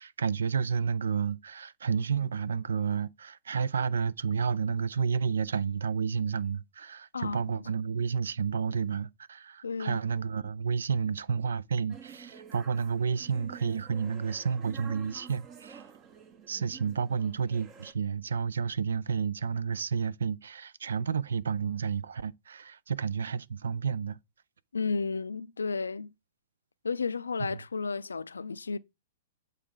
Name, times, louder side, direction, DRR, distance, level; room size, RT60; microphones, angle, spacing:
voice 1, 0.0-15.8 16.5-24.2, right 6 dB, 75° right, 0.4 m, -31 dB
voice 2, 7.1-7.6 9.6-10.0 24.7-26.1 26.8-28.8, left 4 dB, 85° left, 0.4 m, -33 dB
sound 1, 11.9-17.9, right 6 dB, 30° right, 1.0 m, -50 dB
8.2 x 3.5 x 3.8 m
hypercardioid pair, 115°, 0 cm